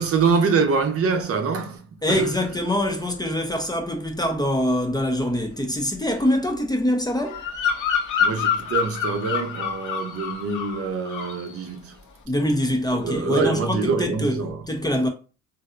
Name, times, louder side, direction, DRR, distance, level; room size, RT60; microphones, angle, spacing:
voice 1, 0.0-2.3 8.2-11.9 13.0-14.6, right 4 dB, 50° right, 0.7 m, -24 dB
voice 2, 2.0-7.4 12.3-15.1, left 1 dB, 15° left, 0.5 m, -24 dB
Bird vocalization bird call bird song, 7.3-10.8 11.1-11.5, left 7 dB, 80° left, 0.8 m, -26 dB
3.2 x 2.5 x 2.4 m
cardioid pair, 90°, 30 cm